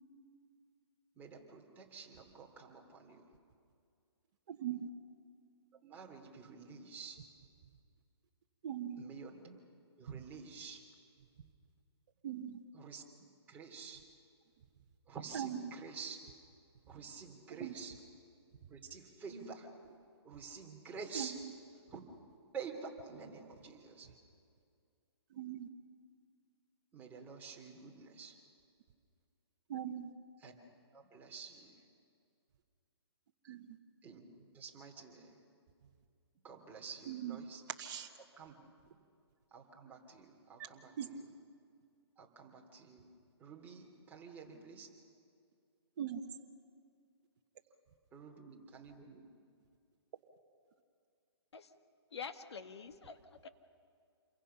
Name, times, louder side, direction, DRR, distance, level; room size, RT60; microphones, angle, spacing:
voice 1, 1.2-3.3 5.8-7.2 9.0-9.6 10.0-10.9 12.7-13.0 13.5-14.1 15.1-16.2 16.8-18.0 18.7-19.7 20.2-21.3 21.9-22.1 22.5-24.1 26.9-28.4 30.4-30.6 30.9-31.7 34.0-35.4 36.4-37.6 38.4-38.6 39.5-41.2 42.2-43.0 43.4-44.9 48.1-49.2, right 5 dB, 10° right, -1 dB, 2.9 m, -49 dB
voice 2, 4.5-4.9 8.6-9.0 12.2-12.6 15.3-15.7 17.5-17.7 21.1-21.4 25.3-25.7 29.7-30.1 33.4-33.8 37.1-37.4 37.8-38.1 40.6-40.7 41.0-41.1 46.0-46.2, right 10 dB, 45° right, 2 dB, 1.3 m, -40 dB
voice 3, 52.1-53.5, left 6 dB, 75° left, 8 dB, 1.7 m, -47 dB
28.5 x 23.0 x 5.8 m, 2.3 s
hypercardioid pair, 155°, 14 cm